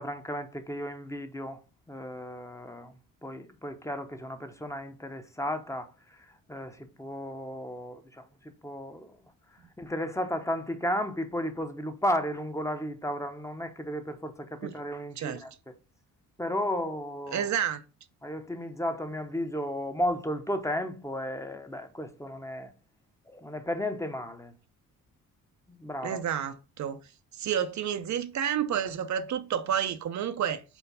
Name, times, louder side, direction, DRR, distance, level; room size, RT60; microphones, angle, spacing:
voice 1, 0.0-1.6 1.9-2.9 3.2-5.9 6.5-8.2 8.6-9.1 9.8-15.5 16.4-17.5 18.2-22.7 23.3-24.5 25.7-26.2, equal, 10° left, 0.8 m, -34 dB
voice 2, 17.3-17.8 26.0-27.0 27.3-30.6, right 9 dB, 60° right, 0.6 m, -30 dB
4.6 x 4.4 x 5.4 m
cardioid pair, 120°, 33 cm